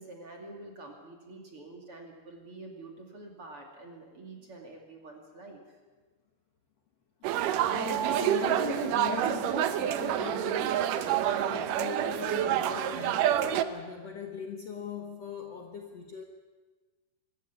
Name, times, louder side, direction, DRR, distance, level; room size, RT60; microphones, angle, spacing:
voice 1, 0.0-5.6, right 2 dB, 40° right, 1 dB, 2.8 m, -47 dB
sound 1, 7.2-13.6, right 11 dB, 75° right, 2.0 m, -28 dB
voice 2, 7.7-16.2, left 6 dB, 55° left, 2 dB, 1.9 m, -40 dB
25.0 x 14.0 x 8.4 m, 1.3 s
omnidirectional pair, 4.6 m